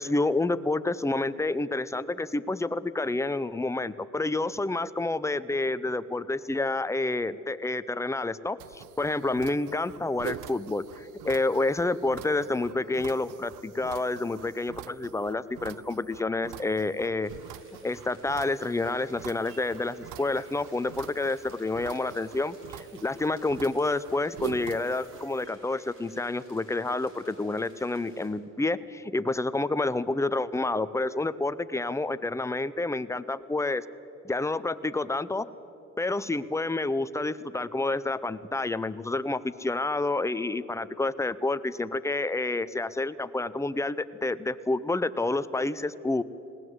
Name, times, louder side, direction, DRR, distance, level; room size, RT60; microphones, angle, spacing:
voice 1, 0.0-17.3 17.8-33.8 34.2-35.5 36.0-46.2, left 2 dB, 10° left, 14 dB, 0.6 m, -29 dB
sound 1, 8.6-25.5, right 14 dB, 80° right, 0.5 m, -45 dB
sound 2, 17.2-28.3, right 1 dB, 45° right, 5.0 m, -57 dB
20.5 x 17.5 x 8.0 m, 2.9 s
cardioid pair, 90°, 30 cm